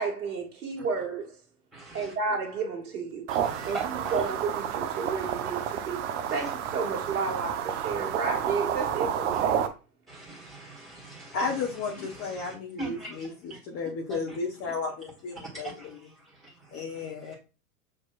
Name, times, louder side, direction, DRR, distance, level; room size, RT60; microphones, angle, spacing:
voice 1, 0.0-1.3 1.9-3.3 3.7-3.8 4.1-6.0 6.3-9.6, right 4 dB, 65° right, 1.5 m, -31 dB
voice 2, 1.7-2.1 3.3-4.3 6.3-6.5 9.3-9.4 10.1-13.7 14.1-14.4 14.6-14.7 15.3-17.3, right 3 dB, 5° right, 1.8 m, -43 dB
sound 1, 3.3-9.7, right 9 dB, 50° right, 0.8 m, -30 dB
voice 3, 11.3-13.3 13.7-15.7 16.7-17.3, left 4 dB, 30° left, 1.0 m, -33 dB
6.6 x 3.0 x 2.4 m
figure-of-eight pair, 100°, 46 cm